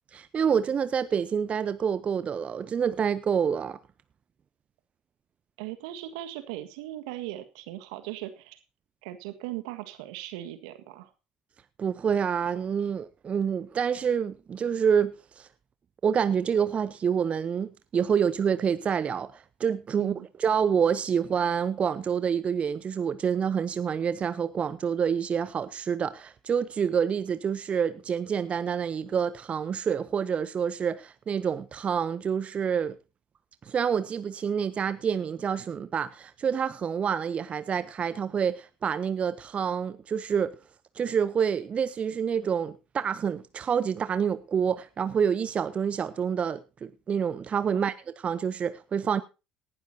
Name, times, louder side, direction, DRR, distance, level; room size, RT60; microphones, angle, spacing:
voice 1, 0.1-3.8 11.8-15.5 16.0-20.1 20.4-33.0 33.6-40.5 40.9-49.2, right 7 dB, 40° right, 0.7 m, -27 dB
voice 2, 5.6-8.6 9.0-11.1 20.0-20.3 47.7-47.9, right 14 dB, 75° right, 1.7 m, -38 dB
18.5 x 11.5 x 2.8 m
hypercardioid pair, 60°, 3 cm